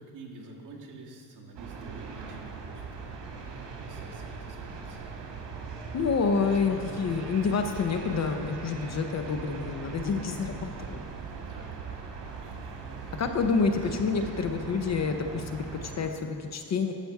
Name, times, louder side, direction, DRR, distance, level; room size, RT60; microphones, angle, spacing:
voice 1, 0.0-5.4 6.6-7.0 8.9-9.0 10.1-11.0 11.2-13.2 13.8-14.4, right 2 dB, 45° right, -3 dB, 1.7 m, -49 dB
sound 1, 1.6-16.1, right 5 dB, 80° right, 1.7 m, -40 dB
voice 2, 5.9-11.0 13.2-16.9, left 5 dB, 40° left, 6 dB, 0.6 m, -28 dB
11.5 x 6.7 x 4.7 m, 2.3 s
cardioid pair, 155°, 42 cm